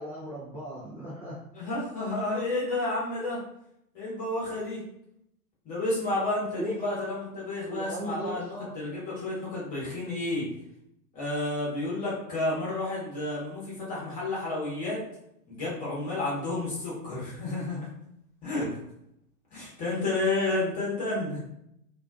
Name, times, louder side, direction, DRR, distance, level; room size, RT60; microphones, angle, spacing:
voice 1, 0.0-1.4 6.6-6.8 7.7-8.7, equal, 25° right, -8 dB, 0.3 m, -37 dB
voice 2, 1.5-3.4 3.9-4.8 5.6-10.5 11.1-15.0 15.5-17.9 18.4-18.8 19.5-21.4, left 2 dB, 15° left, -7 dB, 0.9 m, -31 dB
2.4 x 2.3 x 2.3 m, 0.77 s
hypercardioid pair, 125°, 47 cm